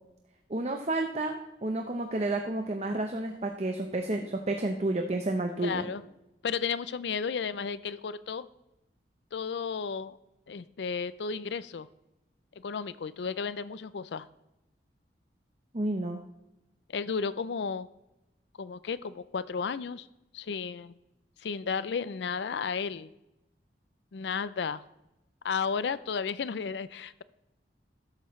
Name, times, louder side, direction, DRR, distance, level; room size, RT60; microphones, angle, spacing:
voice 1, 0.5-5.9 15.7-16.2, right 2 dB, 35° right, 4 dB, 0.8 m, -31 dB
voice 2, 5.6-6.0 6.4-8.5 9.3-10.2 10.5-11.9 12.6-14.3 16.9-17.9 18.6-20.1 20.3-20.9 21.4-23.1 24.1-24.8 25.4-27.2, left 5 dB, 75° left, 16 dB, 0.4 m, -33 dB
13.5 x 11.5 x 3.2 m, 0.93 s
head